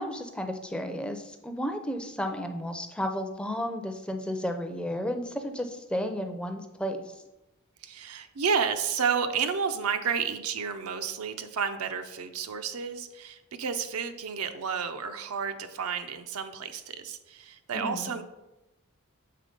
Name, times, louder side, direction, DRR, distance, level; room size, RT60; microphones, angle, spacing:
voice 1, 0.0-7.0 17.7-18.1, equal, 5° left, 5 dB, 0.4 m, -33 dB
voice 2, 7.8-18.2, right 6 dB, 75° right, 8 dB, 0.5 m, -31 dB
6.7 x 3.7 x 5.1 m, 0.97 s
head